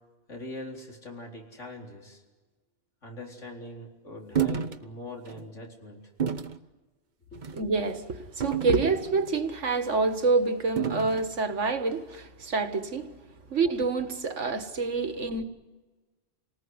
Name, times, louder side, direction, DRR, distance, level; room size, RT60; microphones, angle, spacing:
voice 1, 0.3-2.2 3.0-6.0 7.3-7.4, left 2 dB, 90° left, 4.6 m, -42 dB
sound 1, 4.3-4.8 5.3-5.4 6.2-6.6 7.3-7.6 8.4-9.3 10.8-11.3, right 8 dB, 40° right, 1.1 m, -30 dB
voice 2, 7.5-13.1 13.5-15.4, right 3 dB, 80° right, 2.0 m, -27 dB
28.0 x 19.0 x 9.6 m
omnidirectional pair, 1.2 m